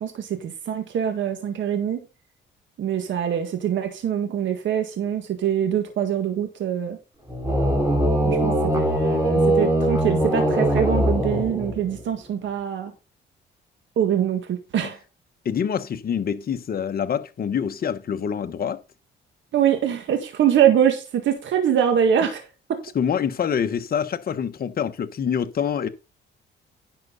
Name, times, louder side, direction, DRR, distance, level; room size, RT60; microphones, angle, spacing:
voice 1, 0.0-2.0 2.8-7.0 8.3-12.9 14.0-15.0 19.5-22.4 22.7-22.8, right 9 dB, 70° right, 1.8 m, -23 dB
sound 1, 7.3-12.0, right 1 dB, 15° right, 4.9 m, -21 dB
voice 2, 15.4-18.8 22.9-25.9, left 7 dB, 50° left, 1.2 m, -26 dB
10.5 x 6.6 x 4.0 m
cardioid pair, 90°, 20 cm